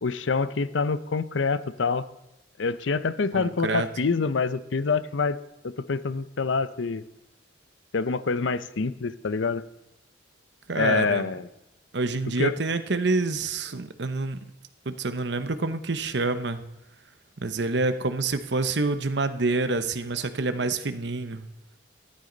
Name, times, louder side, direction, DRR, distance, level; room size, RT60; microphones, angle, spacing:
voice 1, 0.0-2.1 2.6-5.4 5.6-7.0 7.9-9.6 10.7-11.5 12.4-12.5, left 4 dB, 90° left, 14 dB, 0.6 m, -26 dB
voice 2, 3.3-3.9 10.7-11.3 11.9-14.4 14.8-16.6 17.4-21.5, right 3 dB, 70° right, 10 dB, 0.9 m, -27 dB
14.0 x 12.5 x 4.0 m, 0.88 s
head